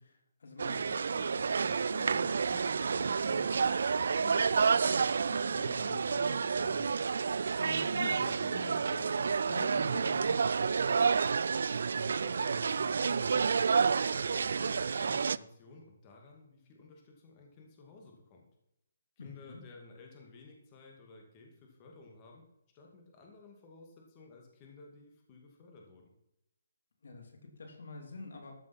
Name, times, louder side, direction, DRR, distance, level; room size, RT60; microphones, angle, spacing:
voice 1, 0.0-6.9 7.6-11.0 19.2-19.6 27.0-28.5, left 3 dB, 75° left, 4 dB, 3.3 m, -47 dB
sound 1, 0.6-15.4, right 5 dB, 70° right, 0.4 m, -30 dB
voice 2, 11.9-18.4 19.2-22.4 22.7-26.1, left 3 dB, 25° left, 1 dB, 2.3 m, -54 dB
13.5 x 7.4 x 6.0 m, 0.79 s
hypercardioid pair, 165°, 0 cm